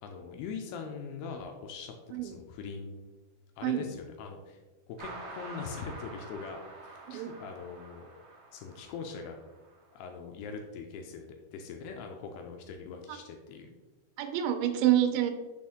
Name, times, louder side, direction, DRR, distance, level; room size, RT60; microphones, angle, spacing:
voice 1, 0.0-3.0 3.6-4.6 4.9-8.1 8.5-9.4 9.9-13.7, left 5 dB, 85° left, 3 dB, 2.3 m, -42 dB
sound 1, 5.0-9.8, right 2 dB, 70° right, 1.9 m, -47 dB
voice 2, 14.2-15.3, right 11 dB, 90° right, 7 dB, 3.0 m, -27 dB
6.5 x 4.3 x 3.6 m, 1.2 s
omnidirectional pair, 5.2 m